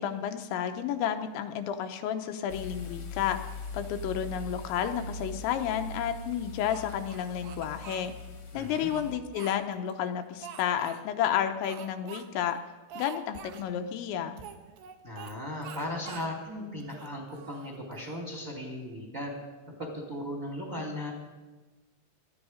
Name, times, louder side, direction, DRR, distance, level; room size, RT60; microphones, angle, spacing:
voice 1, 0.0-3.4 3.7-8.1 8.5-12.6 13.0-14.4, left 9 dB, 85° left, 6 dB, 3.2 m, -31 dB
sound 1, 2.5-9.2, left 3 dB, 50° left, 1.9 m, -41 dB
Speech, 6.7-8.1 8.7-9.9 10.4-11.0 11.6-12.2 12.5-12.6 12.9-13.7 14.4-15.4 15.6-16.3 16.8-18.2, right 8 dB, 75° right, 2.8 m, -46 dB
voice 2, 8.5-8.9 15.0-19.3 19.8-21.1, left 1 dB, 25° right, 1 dB, 2.2 m, -37 dB
19.0 x 13.5 x 5.0 m, 1.2 s
omnidirectional pair, 5.2 m